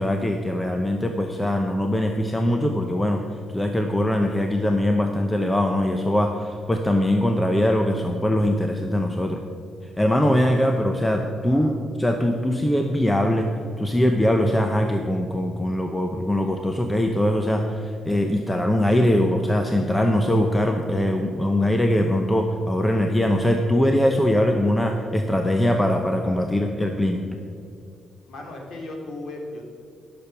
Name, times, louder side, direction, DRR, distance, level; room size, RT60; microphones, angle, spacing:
voice 1, 0.0-3.2 3.5-9.4 10.0-11.7 12.0-13.5 13.8-27.2, left 1 dB, 10° left, 4 dB, 0.7 m, -22 dB
voice 2, 28.3-29.7, left 2 dB, 55° left, 0 dB, 2.8 m, -36 dB
17.0 x 6.9 x 5.9 m, 2.4 s
cardioid pair, 145°, 0 cm